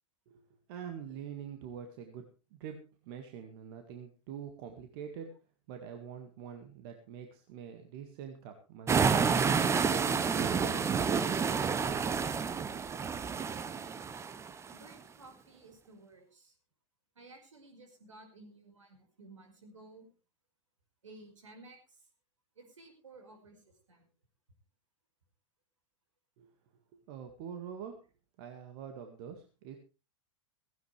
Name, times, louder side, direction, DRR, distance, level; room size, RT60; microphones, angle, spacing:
voice 1, 0.7-2.2 2.5-5.3 5.7-10.9 26.4-26.5 26.9-28.0 28.4-29.8, right 8 dB, 50° right, 5 dB, 2.0 m, -45 dB
sound 1, 8.9-14.7, right 6 dB, 15° right, 0.9 m, -29 dB
voice 2, 14.7-16.5 17.2-20.1 21.0-22.0 22.6-23.6 23.9-24.1, right 2 dB, 75° right, 4 dB, 5.2 m, -55 dB
16.5 x 16.5 x 3.4 m, 0.32 s
figure-of-eight pair, 95°, 16 cm